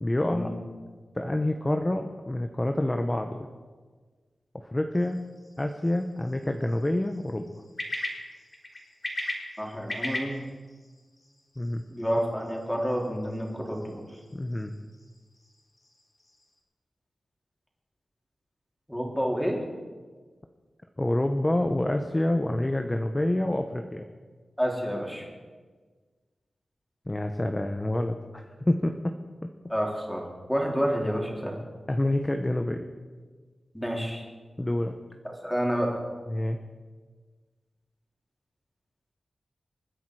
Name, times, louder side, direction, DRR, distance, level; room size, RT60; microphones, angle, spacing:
voice 1, 0.0-0.5 1.2-3.4 4.5-5.2 5.6-7.5 11.6-11.8 14.3-14.8 21.0-24.0 27.1-29.1 31.9-32.8 34.6-35.0 36.3-36.6, left 1 dB, 20° left, 5 dB, 1.0 m, -27 dB
sound 1, 4.9-16.6, left 1 dB, 35° left, 4.0 m, -41 dB
voice 2, 9.6-10.4 11.9-14.0 18.9-19.6 24.6-25.3 29.7-30.2 30.5-31.5 33.7-34.2 35.4-36.0, equal, ahead, -2 dB, 3.9 m, -29 dB
28.0 x 10.0 x 4.9 m, 1.5 s
wide cardioid pair, 100°, 0 cm